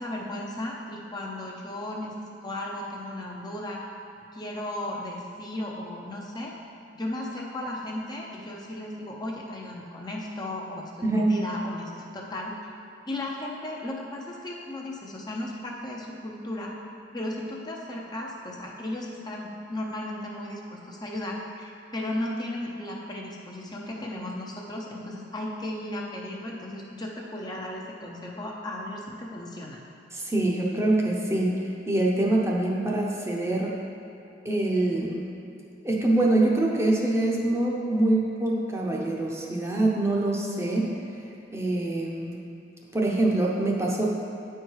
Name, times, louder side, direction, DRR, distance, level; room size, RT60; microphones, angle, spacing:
voice 1, 0.0-2.1 2.4-3.8 4.3-6.5 6.9-12.5 13.1-16.7 17.1-29.8, left 1 dB, 20° left, -2 dB, 0.7 m, -35 dB
voice 2, 30.1-31.5 31.9-33.7 34.4-35.2 35.8-40.9 41.5-42.4 42.9-44.1, right 2 dB, 15° right, -2 dB, 0.8 m, -24 dB
8.9 x 4.6 x 4.7 m, 2.9 s
head